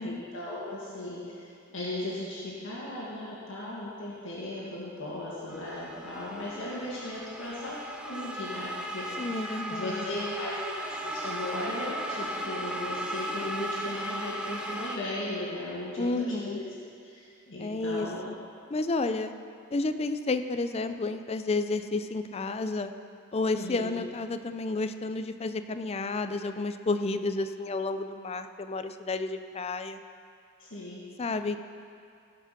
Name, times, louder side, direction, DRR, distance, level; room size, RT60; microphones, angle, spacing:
voice 1, 0.0-1.4 1.7-16.7 17.0-18.2 23.5-24.0 30.6-31.0, left 1 dB, 65° left, -7 dB, 2.1 m, -37 dB
sound 1, 5.5-15.0, right 1 dB, 5° right, 0.7 m, -36 dB
voice 2, 9.2-10.3 16.0-16.6 17.6-18.4 18.7-19.3 19.7-22.9 23.3-30.0 31.2-31.6, left 3 dB, 30° left, 9 dB, 0.4 m, -31 dB
16.5 x 5.8 x 5.9 m, 2.4 s
head